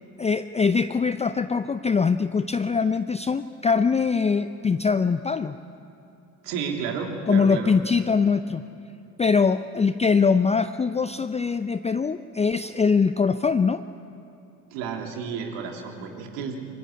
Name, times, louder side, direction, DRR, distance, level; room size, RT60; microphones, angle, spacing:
voice 1, 0.2-5.6 7.3-8.6 9.2-13.8, left 5 dB, 15° left, 12 dB, 0.5 m, -22 dB
voice 2, 6.4-7.7 14.7-16.7, right 6 dB, 65° right, 2 dB, 3.4 m, -31 dB
24.0 x 17.0 x 9.9 m, 2.8 s
figure-of-eight pair, 55°, 45 cm